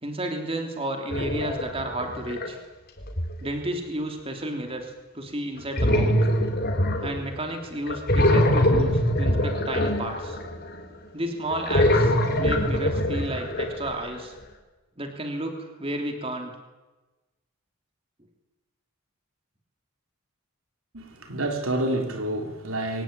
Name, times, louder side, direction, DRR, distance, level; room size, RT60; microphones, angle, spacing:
voice 1, 0.0-2.6 3.4-6.1 7.0-10.4 11.1-14.3 15.0-16.5, right 1 dB, 25° right, 3.2 m, -32 dB
sound 1, 1.1-2.5 3.0-3.5 5.8-7.5 7.9-10.7 11.5-14.0, left 1 dB, 45° left, 3.8 m, -23 dB
voice 2, 20.9-23.0, right 1 dB, 75° right, 3.5 m, -28 dB
23.5 x 19.5 x 9.1 m
head